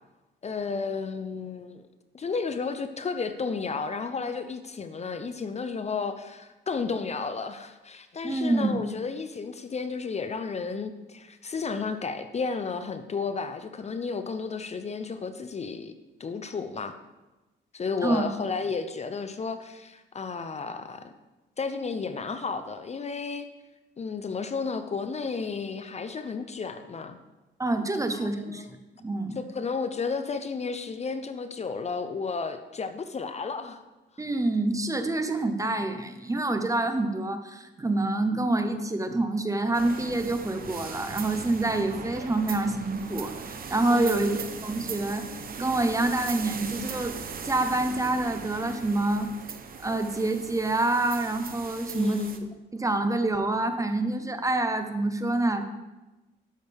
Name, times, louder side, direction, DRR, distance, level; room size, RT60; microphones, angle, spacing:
voice 1, 0.4-1.8 2.1-15.9 16.2-16.9 17.7-21.1 21.6-23.5 24.0-27.2 28.1-28.4 29.4-33.8 43.9-44.3 51.9-52.5, left 4 dB, 35° left, 9 dB, 0.6 m, -32 dB
voice 2, 8.2-8.8 18.0-18.3 27.6-28.7 29.0-29.4 34.2-45.3 45.6-47.1 47.4-49.3 49.8-52.2 52.7-55.6, right 2 dB, 15° right, 8 dB, 0.8 m, -27 dB
sound 1, 39.7-52.4, right 6 dB, 45° right, 0.9 m, -39 dB
12.0 x 6.3 x 3.5 m, 1.1 s
cardioid pair, 90°, 20 cm